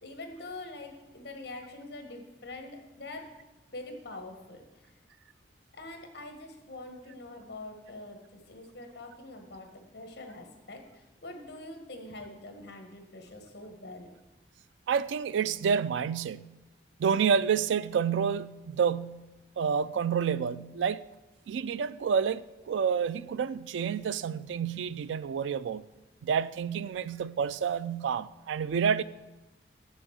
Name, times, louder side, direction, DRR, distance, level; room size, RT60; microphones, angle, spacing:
voice 1, 0.0-3.3 3.7-4.9 5.7-14.1, left 2 dB, 65° left, 1.4 m, -44 dB
voice 2, 14.9-16.5 17.0-19.3 19.6-21.0 21.5-25.8 26.2-29.0, right 7 dB, 90° right, 0.3 m, -29 dB
7.0 x 6.3 x 6.3 m
head